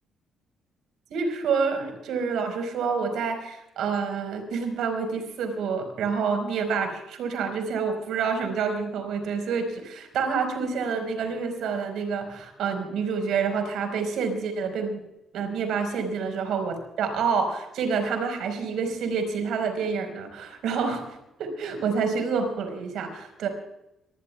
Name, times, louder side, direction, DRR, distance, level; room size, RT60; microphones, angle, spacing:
voice 1, 1.1-15.0 15.3-23.5, right 5 dB, 80° right, 6 dB, 4.3 m, -28 dB
25.0 x 16.5 x 2.3 m, 0.88 s
cardioid pair, 90°, 0 cm